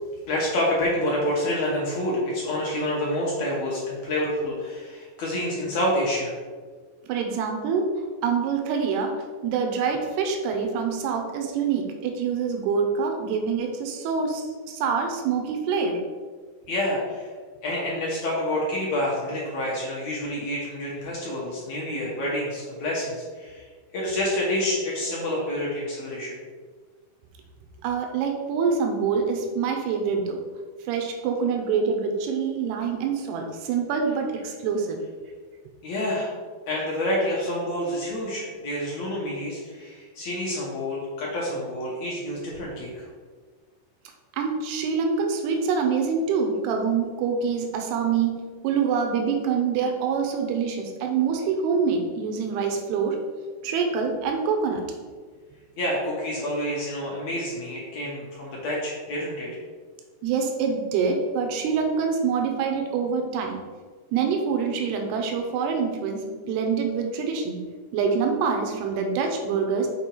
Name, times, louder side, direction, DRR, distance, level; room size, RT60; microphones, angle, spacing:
voice 1, 0.3-6.3 16.7-17.3 17.6-23.7 23.9-26.4 35.8-36.3 36.7-43.1 55.8-59.6, left 1 dB, 65° left, -4 dB, 1.9 m, -28 dB
voice 2, 7.1-7.9 8.2-9.1 9.4-16.0 27.8-30.4 30.9-35.0 44.3-53.2 53.6-54.8 60.2-63.6 64.1-67.6 67.9-69.9, right 5 dB, 85° right, 3 dB, 2.8 m, -25 dB
7.2 x 4.4 x 4.6 m, 1.5 s
omnidirectional pair, 4.6 m